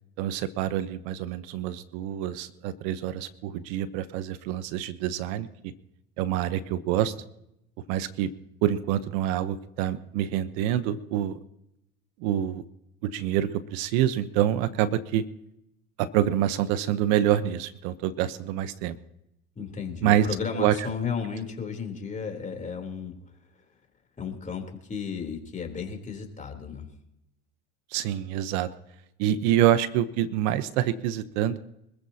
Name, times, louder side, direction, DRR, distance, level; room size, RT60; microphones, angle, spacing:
voice 1, 0.2-5.5 6.2-7.1 7.9-8.3 8.6-11.4 12.2-12.6 13.0-15.2 16.0-18.9 20.0-20.3 20.5-20.7 27.9-28.7 29.2-31.6, right 11 dB, 70° right, 13 dB, 1.0 m, -26 dB
voice 2, 19.6-23.1 23.6-23.7 24.2-26.9, left 6 dB, 20° left, 4 dB, 3.7 m, -34 dB
25.5 x 14.5 x 2.9 m, 0.81 s
supercardioid pair, 95°, 34 cm